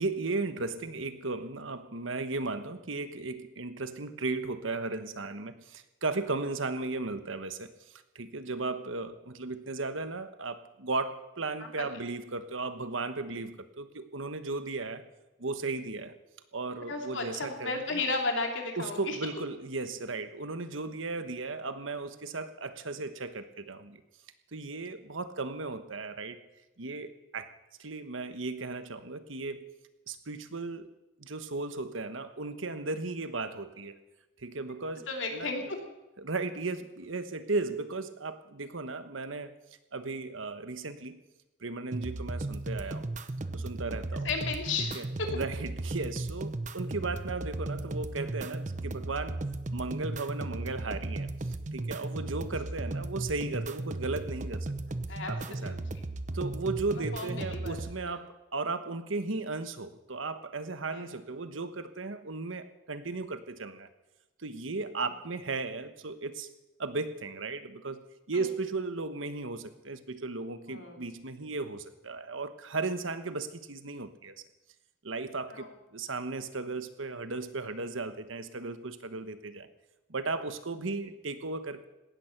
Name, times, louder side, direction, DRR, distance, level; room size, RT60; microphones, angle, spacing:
voice 1, 0.0-15.0 15.4-16.1 16.5-18.0 18.8-24.0 24.5-26.4 26.8-29.7 30.1-30.9 31.2-34.0 34.4-35.7 36.2-39.5 39.9-41.2 41.6-43.1 43.5-44.3 44.9-49.4 49.7-54.7 55.3-55.8 56.3-63.9 64.4-66.5 66.8-74.3 75.0-79.7 80.1-81.9, right 3 dB, 90° right, 11 dB, 1.3 m, -36 dB
voice 2, 16.9-19.2 35.1-35.8 44.2-45.3 55.1-55.3 55.6-55.8 56.9-57.8 60.9-61.0 65.0-65.1 68.3-68.5 70.7-71.0 75.5-75.7, left 3 dB, 75° left, 3 dB, 3.0 m, -34 dB
sound 1, 41.9-57.9, right 2 dB, 40° right, 0.7 m, -36 dB
17.5 x 13.5 x 6.0 m, 0.99 s
head